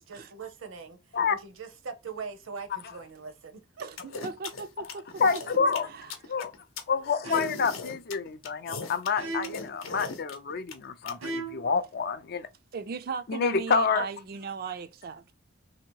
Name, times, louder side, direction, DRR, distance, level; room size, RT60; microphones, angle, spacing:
voice 1, 0.1-1.0 1.3-4.0, right 5 dB, 70° right, 0.7 m, -41 dB
voice 2, 3.8-5.4 5.9-6.1 12.7-15.3, right 5 dB, 45° right, 0.3 m, -37 dB
sound 1, 4.0-11.1, left 4 dB, 75° left, 0.7 m, -39 dB
voice 3, 5.2-5.9 6.3-6.5 6.9-12.5 13.3-14.1, left 5 dB, 45° left, 0.4 m, -28 dB
sound 2, 5.6-6.0 7.2-7.8 9.2-9.8 11.2-11.8, right 3 dB, 90° right, 1.3 m, -37 dB
2.9 x 2.8 x 4.4 m
head